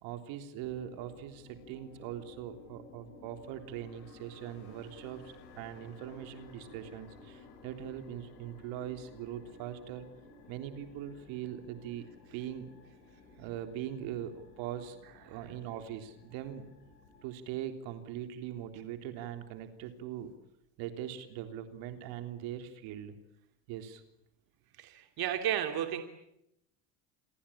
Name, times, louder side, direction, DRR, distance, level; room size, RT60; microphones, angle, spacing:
voice 1, 0.0-10.1 10.5-12.7 13.4-15.0 15.2-16.7 17.2-20.3 20.8-23.1 23.7-24.0, right 10 dB, 70° right, 7 dB, 3.6 m, -41 dB
sound 1, 0.6-17.2, left 3 dB, 85° left, 7.9 m, -56 dB
voice 2, 24.8-26.0, right 10 dB, 50° right, 6 dB, 2.9 m, -33 dB
28.5 x 22.5 x 8.7 m, 0.82 s
supercardioid pair, 105°, 47 cm